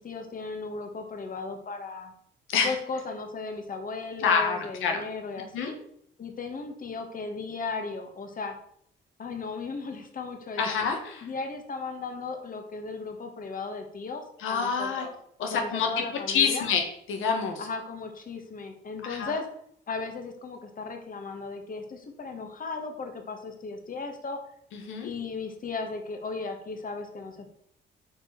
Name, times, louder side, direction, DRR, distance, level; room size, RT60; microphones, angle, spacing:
voice 1, 0.0-2.1 2.6-5.8 6.2-8.5 9.2-10.7 11.2-15.1 15.4-16.7 17.6-19.5 19.9-24.4 25.0-27.5, left 4 dB, 45° left, 5 dB, 1.8 m, -36 dB
voice 2, 4.2-5.0 5.5-5.7 10.6-11.3 14.4-15.1 15.4-15.9 16.3-16.8 17.1-17.7 19.0-19.4 24.7-25.1, left 6 dB, 90° left, 3 dB, 1.9 m, -27 dB
8.7 x 4.8 x 7.0 m, 0.68 s
cardioid pair, 90°, 20 cm